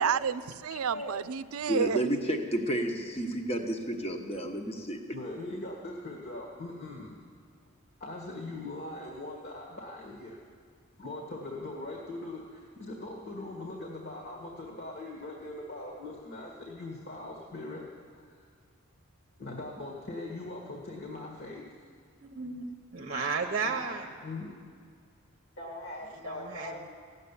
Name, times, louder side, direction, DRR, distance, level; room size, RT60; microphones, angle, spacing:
voice 1, 0.0-2.0, right 7 dB, 85° right, 0.5 m, -30 dB
voice 2, 1.7-5.0, right 1 dB, 30° left, 1.1 m, -31 dB
voice 3, 5.1-7.2 8.0-10.4 11.0-17.9 18.1-18.5 19.4-21.9 23.1-23.3 23.6-24.5 25.6-26.8, left 2 dB, 50° left, 1.8 m, -41 dB
voice 4, 22.2-22.6 22.9-24.1 26.1-26.9, right 4 dB, 40° right, 0.8 m, -33 dB
16.0 x 7.6 x 9.9 m
head